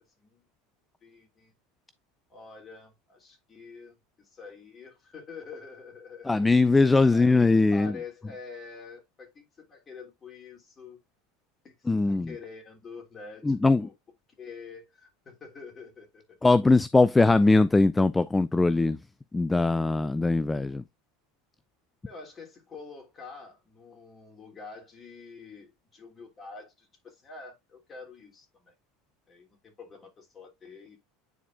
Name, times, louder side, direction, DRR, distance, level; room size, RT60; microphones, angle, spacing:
voice 1, 1.0-1.5 2.3-6.4 7.1-11.0 11.6-13.9 14.4-16.4 22.0-28.7 29.3-31.0, left 4 dB, 30° left, 3.2 m, -46 dB
voice 2, 6.3-8.0 11.9-12.3 13.4-13.9 16.4-19.0 19.3-20.8, left 3 dB, 10° left, 0.4 m, -21 dB
9.4 x 4.2 x 2.5 m
hypercardioid pair, 95°, 0 cm